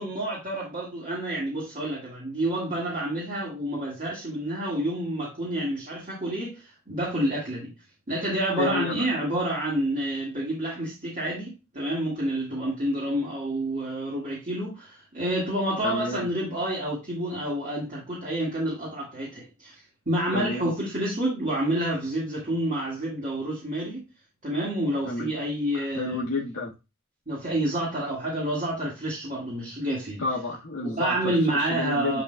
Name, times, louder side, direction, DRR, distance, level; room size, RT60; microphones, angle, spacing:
voice 1, 0.0-7.7 8.1-19.8 20.1-24.0 24.4-26.2 27.3-30.2 30.8-32.2, right 1 dB, 40° right, 1.9 m, -29 dB
voice 2, 8.6-9.0 15.8-16.3 20.3-20.7 25.1-25.3 25.9-26.7 30.2-32.2, left 2 dB, 85° left, 1.5 m, -30 dB
10.5 x 4.2 x 2.2 m
head